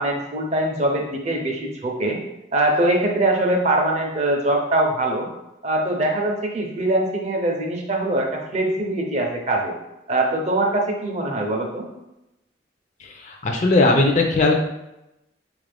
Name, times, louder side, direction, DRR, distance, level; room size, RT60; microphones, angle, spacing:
voice 1, 0.0-2.2 2.5-5.3 5.6-9.7 10.1-11.9, right 1 dB, 35° right, 1 dB, 0.6 m, -22 dB
voice 2, 13.0-14.6, left 2 dB, 40° left, 2 dB, 0.5 m, -19 dB
4.1 x 2.5 x 3.3 m, 0.93 s
head